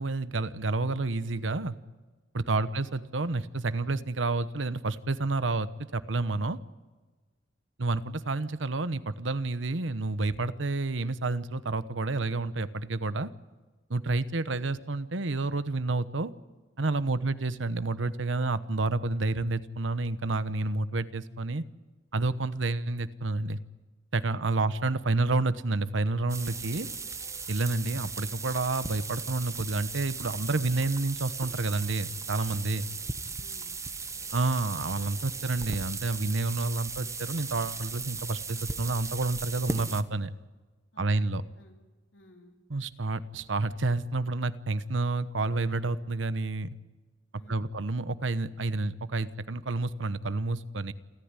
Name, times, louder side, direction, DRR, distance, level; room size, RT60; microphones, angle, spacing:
voice 1, 0.0-1.7 2.3-6.6 7.8-13.3 13.9-16.3 16.8-21.6 22.1-23.6 24.1-26.9 27.5-32.9 34.3-40.3 41.0-41.4 42.7-46.7 47.5-50.9, right 3 dB, 80° right, 14 dB, 1.0 m, -29 dB
voice 2, 2.5-2.9 17.1-17.4 24.2-25.0 32.7-33.7 40.9-41.8 42.1-42.5 47.4-47.8, left 1 dB, 75° left, 3 dB, 3.6 m, -58 dB
sound 1, 26.3-40.0, right 4 dB, 15° right, 1.0 m, -37 dB
28.5 x 14.0 x 9.8 m, 1.3 s
head